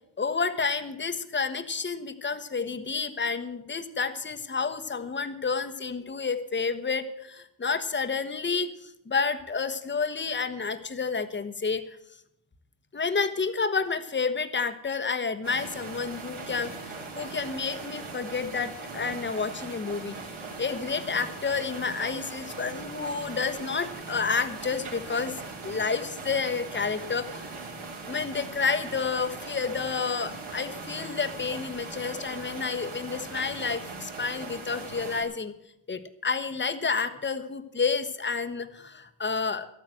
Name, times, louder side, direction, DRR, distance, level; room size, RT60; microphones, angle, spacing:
voice 1, 0.2-11.8 12.9-25.4 25.6-27.5 28.1-35.5 35.9-39.7, left 5 dB, 20° left, 10 dB, 1.2 m, -30 dB
sound 1, 15.4-35.2, right 3 dB, 70° right, 3.6 m, -40 dB
12.5 x 9.2 x 7.7 m, 0.78 s
cardioid pair, 70°, 50 cm